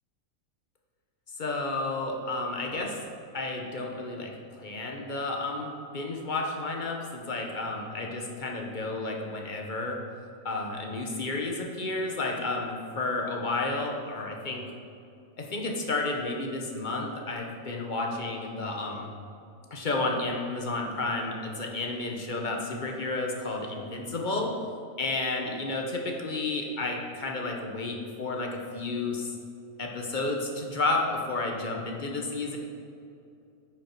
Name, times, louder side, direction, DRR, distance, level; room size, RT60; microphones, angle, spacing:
voice 1, 1.4-3.0 3.3-10.0 10.4-14.7 15.4-19.1 19.7-24.5 25.0-29.3 29.8-32.6, left 2 dB, 40° left, 1 dB, 1.0 m, -31 dB
9.8 x 5.6 x 4.5 m, 2.5 s
omnidirectional pair, 1.4 m